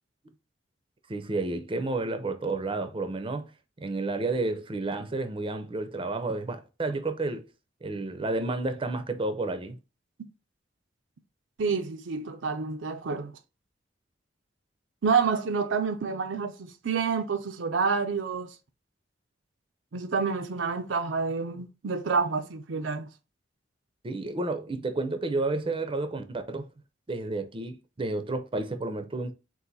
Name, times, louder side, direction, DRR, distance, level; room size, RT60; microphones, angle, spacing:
voice 1, 1.1-3.5 3.8-7.5 7.8-9.8 24.0-26.7 27.1-29.3, right 2 dB, 30° right, 0.5 m, -31 dB
voice 2, 11.6-13.3 15.0-18.5 19.9-23.1, right 5 dB, 90° right, 0.6 m, -28 dB
4.0 x 2.5 x 3.9 m
head